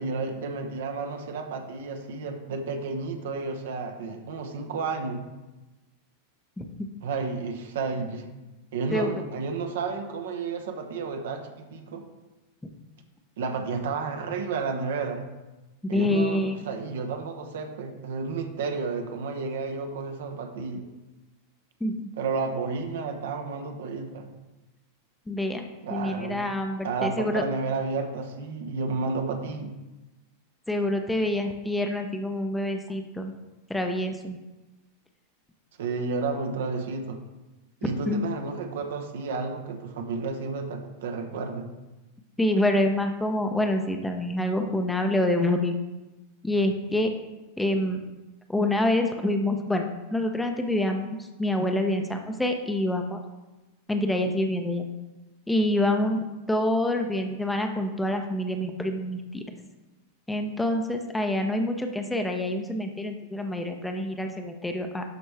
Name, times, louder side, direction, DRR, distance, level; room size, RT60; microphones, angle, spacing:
voice 1, 0.0-5.3 7.0-8.3 8.7-12.0 13.4-15.3 15.9-20.9 22.2-24.3 25.8-26.4 26.8-29.8 35.8-37.2 37.8-41.7, right 4 dB, 60° right, 5 dB, 0.9 m, -31 dB
voice 2, 15.9-16.7 21.8-21.9 25.3-25.6 25.9-27.4 30.7-33.3 33.7-34.4 38.1-38.2 42.4-45.8 46.4-47.1 47.6-48.0 48.5-49.8 50.1-53.2 53.9-54.8 55.5-59.4 60.3-65.0, left 1 dB, 5° left, 4 dB, 0.7 m, -26 dB
12.0 x 4.4 x 3.2 m, 1.1 s
figure-of-eight pair, 90°, 0 cm